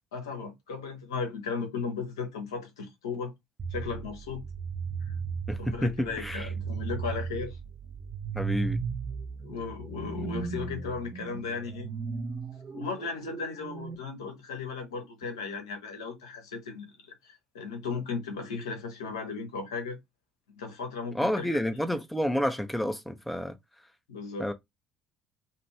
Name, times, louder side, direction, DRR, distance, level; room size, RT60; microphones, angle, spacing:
voice 1, 0.1-3.3 3.7-4.4 5.0-5.1 5.6-7.6 9.4-11.9 12.7-20.0 20.6-21.6 24.1-24.5, left 5 dB, 75° left, 0.9 m, -36 dB
sound 1, 3.6-14.0, right 5 dB, 35° right, 0.8 m, -36 dB
voice 2, 5.5-6.5 8.3-8.8 21.1-23.6 24.4-24.5, equal, 5° left, 0.7 m, -29 dB
2.7 x 2.5 x 3.0 m
figure-of-eight pair, 55°, 2 cm